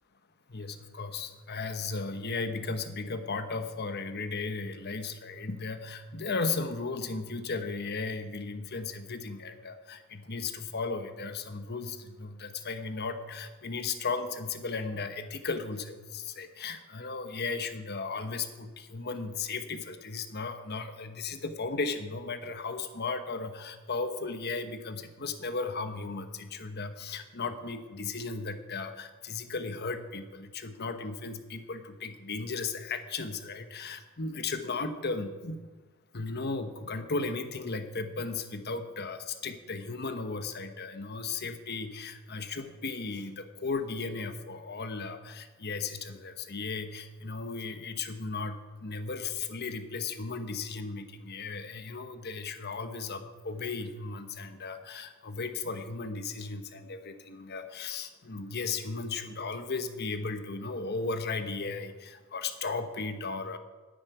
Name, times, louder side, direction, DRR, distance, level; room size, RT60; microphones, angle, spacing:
voice 1, 0.5-35.7 36.1-63.6, left 4 dB, 50° left, 9 dB, 1.1 m, -35 dB
10.5 x 8.6 x 9.4 m, 1.3 s
head